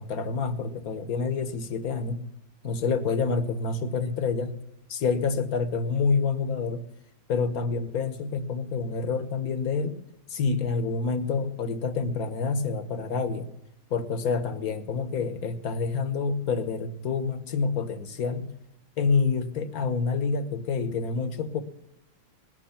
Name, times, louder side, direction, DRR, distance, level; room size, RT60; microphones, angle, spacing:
voice 1, 0.0-2.2 2.6-4.5 4.9-6.8 7.3-10.0 10.3-13.5 13.9-18.5 19.0-21.6, left 4 dB, 55° left, 12 dB, 1.4 m, -27 dB
19.5 x 9.4 x 5.7 m, 0.84 s
omnidirectional pair, 2.1 m